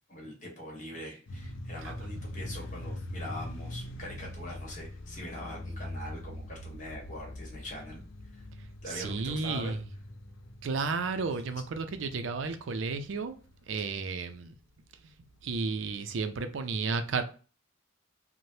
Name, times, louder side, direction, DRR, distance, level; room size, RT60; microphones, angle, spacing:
voice 1, 0.1-8.0 8.3-8.4 8.8-9.8, left 1 dB, 40° left, 1.2 m, -43 dB
sound 1, 1.3-14.4, left 1 dB, 75° left, 0.5 m, -43 dB
voice 2, 8.9-9.8 10.6-13.4 13.7-14.5 15.4-17.2, right 4 dB, 70° right, 0.4 m, -32 dB
3.2 x 2.1 x 2.7 m
head